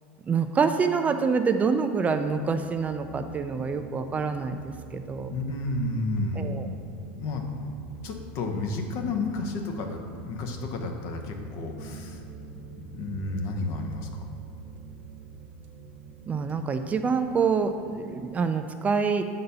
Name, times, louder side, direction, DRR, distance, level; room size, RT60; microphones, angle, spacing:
voice 1, 0.3-5.3 6.4-6.7 16.3-19.2, right 5 dB, 20° right, 8 dB, 0.3 m, -26 dB
sound 1, 2.1-18.3, right 4 dB, 50° right, 1.0 m, -45 dB
voice 2, 5.3-6.6 7.1-7.7 8.0-12.2 12.8-14.3, left 2 dB, 55° left, 4 dB, 0.9 m, -31 dB
6.7 x 4.0 x 5.5 m, 2.5 s
supercardioid pair, 110°, 6 cm